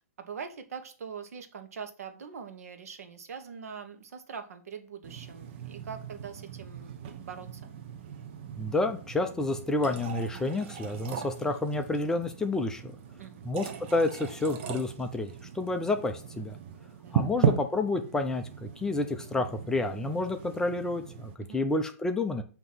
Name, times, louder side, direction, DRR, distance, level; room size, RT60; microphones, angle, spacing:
voice 1, 0.2-6.9 7.2-7.7 13.2-13.4 17.0-17.3 21.4-21.6, right 6 dB, 75° right, 6 dB, 1.2 m, -43 dB
sound 1, 5.0-21.3, right 7 dB, 45° right, 0.8 m, -37 dB
voice 2, 8.6-13.0 13.4-16.6 17.1-22.4, left 2 dB, 5° left, 6 dB, 0.6 m, -30 dB
7.5 x 3.0 x 6.1 m, 0.38 s
hypercardioid pair, 150°, 8 cm